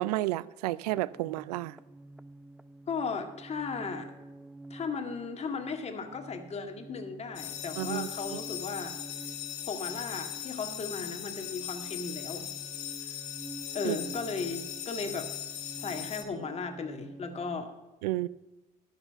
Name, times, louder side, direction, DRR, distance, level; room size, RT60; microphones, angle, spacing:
voice 1, 0.0-1.8 7.8-8.1 13.8-14.0 18.0-18.3, right 17 dB, 80° right, 0.4 m, -31 dB
sound 1, 0.9-17.6, right 1 dB, 5° right, 0.5 m, -48 dB
voice 2, 2.9-4.1 4.7-8.9 9.6-12.5 13.0-13.2 13.7-15.3 15.8-17.7, left 4 dB, 35° left, 1.9 m, -36 dB
Electric school bell, 7.3-16.2, left 12 dB, 75° left, 1.7 m, -39 dB
12.0 x 7.1 x 6.9 m
hypercardioid pair, 75°, 20 cm